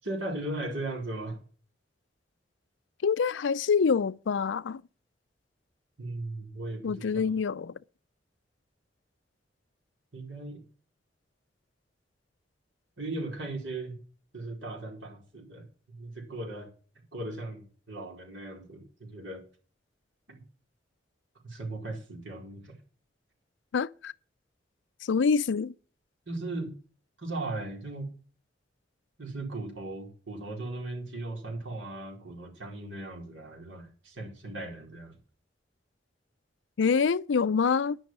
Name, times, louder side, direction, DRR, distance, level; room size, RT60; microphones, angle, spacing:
voice 1, 0.0-1.4 6.0-7.3 10.1-10.6 13.0-14.0 14.3-16.7 17.1-19.4 20.3-20.4 21.4-22.8 26.3-26.7 27.2-28.1 29.2-35.1, right 2 dB, 85° right, 4.6 m, -37 dB
voice 2, 3.0-4.8 6.8-7.7 23.7-24.1 25.0-25.7 36.8-38.0, left 5 dB, 75° left, 0.4 m, -26 dB
10.5 x 6.3 x 7.4 m
head